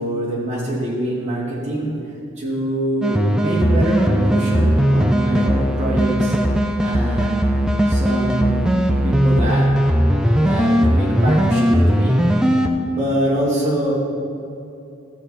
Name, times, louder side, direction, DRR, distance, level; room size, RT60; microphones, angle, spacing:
voice 1, 0.0-1.9 2.4-6.4 6.8-7.5 7.9-8.7 9.0-9.7 10.3-12.4 12.8-13.9, right 1 dB, 30° right, -7 dB, 2.7 m, -24 dB
sound 1, 3.0-12.7, equal, 5° right, 0.4 m, -18 dB
13.5 x 7.5 x 4.1 m, 2.7 s
head